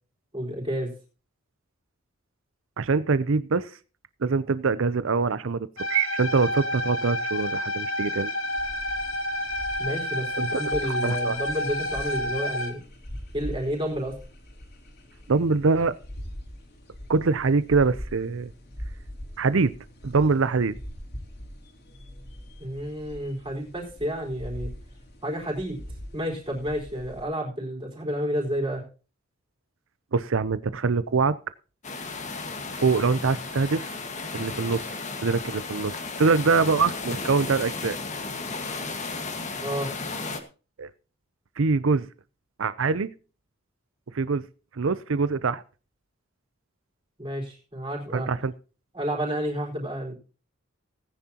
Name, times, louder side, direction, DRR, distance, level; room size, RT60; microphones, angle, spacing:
voice 1, 0.3-0.9 9.8-12.8 13.3-14.2 22.6-24.7 25.2-25.8 26.1-28.8 39.6-39.9 47.2-48.3 48.9-50.1, equal, 25° right, -1 dB, 4.2 m, -30 dB
voice 2, 2.8-3.7 4.2-8.3 10.4-10.6 11.0-11.4 15.3-15.9 17.1-18.5 19.4-19.7 20.0-20.8 30.1-31.4 32.7-33.9 34.3-34.9 35.2-38.0 40.8-40.9 41.6-42.1 42.6-43.1 44.1-44.4 44.8-45.6 48.1-48.5, right 4 dB, 75° right, 15 dB, 0.6 m, -24 dB
sound 1, 5.8-12.7, left 1 dB, 80° left, 1.8 m, -29 dB
sound 2, 8.4-27.2, equal, 55° left, 3.2 m, -42 dB
sound 3, 31.8-40.4, left 3 dB, 35° left, 1.6 m, -34 dB
18.5 x 10.0 x 2.9 m, 0.35 s
head